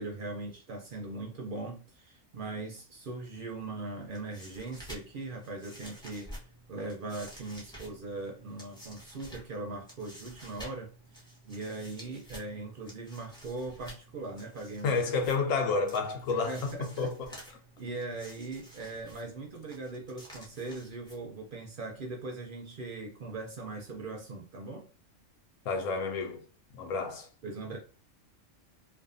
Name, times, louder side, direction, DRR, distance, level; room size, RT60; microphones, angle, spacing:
voice 1, 0.0-6.4 6.7-15.0 16.3-17.1 17.8-24.9 27.4-27.8, right 3 dB, 60° right, 0.6 m, -40 dB
sound 1, 4.0-21.6, equal, 5° left, 0.8 m, -51 dB
voice 2, 14.8-17.4 25.6-26.5 26.7-27.3, left 4 dB, 90° left, 1.0 m, -30 dB
2.5 x 2.4 x 2.5 m
omnidirectional pair, 1.3 m